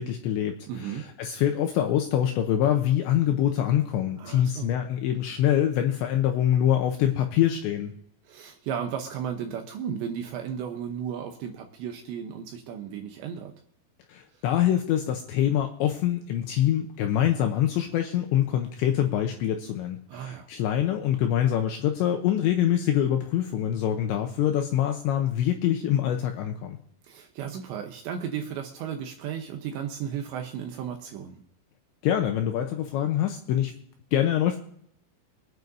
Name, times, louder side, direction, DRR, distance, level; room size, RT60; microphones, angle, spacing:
voice 1, 0.0-7.9 14.1-26.8 32.0-33.7 34.1-34.6, left 11 dB, 85° left, 4 dB, 2.6 m, -25 dB
voice 2, 0.7-1.0 4.2-4.7 8.3-13.5 20.1-20.5 27.0-31.4, right 8 dB, 80° right, 4 dB, 2.7 m, -34 dB
24.5 x 9.3 x 2.7 m, 0.66 s
omnidirectional pair, 6.0 m